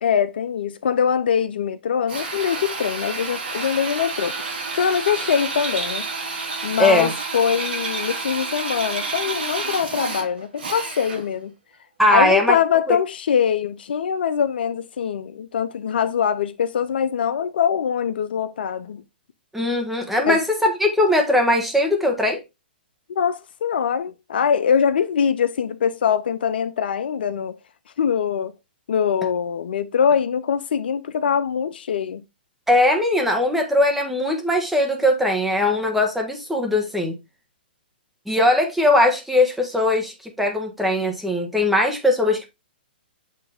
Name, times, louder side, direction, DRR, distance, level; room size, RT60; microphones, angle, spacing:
voice 1, 0.0-4.3 4.7-6.1 6.6-11.5 12.1-19.0 20.3-20.4 23.1-27.6 28.0-28.5 28.9-32.2, left 7 dB, 70° left, 0.6 m, -23 dB
Drill, 2.1-11.4, right 4 dB, 75° right, 2.5 m, -29 dB
voice 2, 6.8-7.1 12.0-12.5 12.9-13.0 19.5-22.4 32.7-37.2 38.3-42.5, left 1 dB, 5° right, 1.6 m, -20 dB
8.5 x 3.4 x 3.5 m
hypercardioid pair, 135°, 6 cm